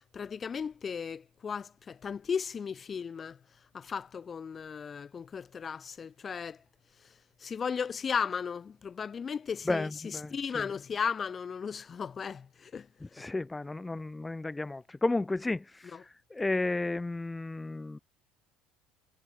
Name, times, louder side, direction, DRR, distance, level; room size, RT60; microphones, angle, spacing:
voice 1, 0.1-3.4 3.7-6.6 7.4-9.9 10.3-12.9 13.2-13.3, left 6 dB, 30° left, 1.9 m, -35 dB
voice 2, 9.6-10.7 13.0-18.0, left 2 dB, 10° left, 1.7 m, -33 dB
supercardioid pair, 110°, 0 cm